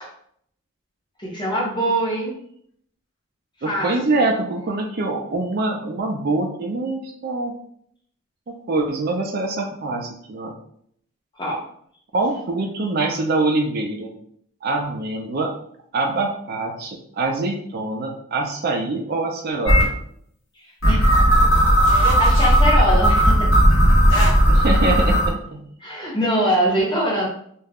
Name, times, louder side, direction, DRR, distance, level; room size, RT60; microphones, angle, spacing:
voice 1, 1.2-2.3 3.6-3.9 11.4-11.6 20.9-21.1 21.9-23.5 25.8-27.3, equal, 20° left, -4 dB, 0.7 m, -23 dB
voice 2, 3.6-7.5 8.5-10.6 12.1-14.1 14.6-15.5 15.9-20.0 24.5-25.6, right 2 dB, 45° right, 2 dB, 0.4 m, -24 dB
sound 1, 19.7-19.8 20.8-25.3, equal, 60° left, 0.9 m, -15 dB
2.4 x 2.1 x 3.4 m, 0.65 s
head